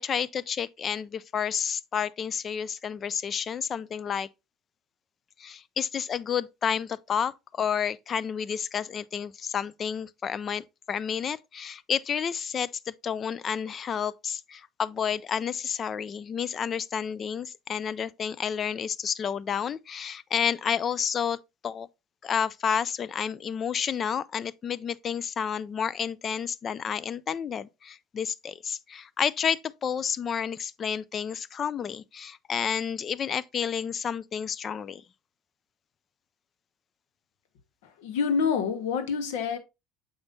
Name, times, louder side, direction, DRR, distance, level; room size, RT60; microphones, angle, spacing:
voice 1, 0.0-4.3 5.4-21.4 21.6-21.9 22.2-35.0, left 7 dB, 35° left, 0.4 m, -30 dB
voice 2, 37.8-39.6, left 6 dB, 90° left, 1.3 m, -27 dB
7.0 x 5.4 x 2.6 m
cardioid pair, 130°, 0 cm